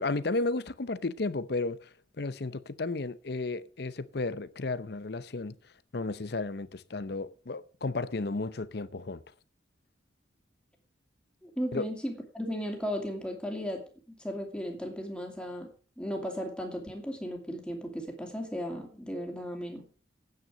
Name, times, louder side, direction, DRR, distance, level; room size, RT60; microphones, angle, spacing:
voice 1, 0.0-5.5 5.9-9.2 11.7-11.8, left 3 dB, 60° left, 0.7 m, -33 dB
voice 2, 11.4-13.8 14.1-15.7 16.0-19.9, equal, 5° left, 2.6 m, -35 dB
9.5 x 9.1 x 6.2 m
head